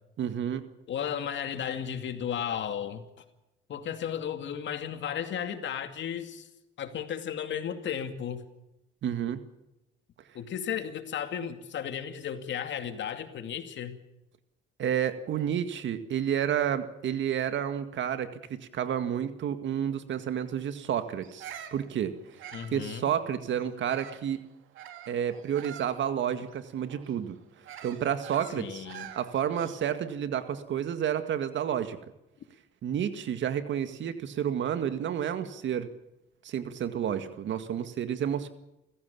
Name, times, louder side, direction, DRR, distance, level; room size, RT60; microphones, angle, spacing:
voice 1, 0.2-0.7 9.0-9.4 14.8-22.1 22.7-24.4 25.1-27.4 27.8-32.0 32.8-35.9 36.4-38.5, right 9 dB, 70° right, 10 dB, 2.0 m, -30 dB
voice 2, 0.9-3.0 3.7-6.5 6.8-8.4 10.3-13.9 22.5-23.0 28.5-29.1, left 8 dB, 70° left, 8 dB, 2.5 m, -34 dB
Bird vocalization bird call bird song, 21.2-24.3 24.7-30.0, right 10 dB, 85° right, 2.3 m, -47 dB
29.0 x 15.5 x 7.1 m, 0.91 s
cardioid pair, 90°, 20 cm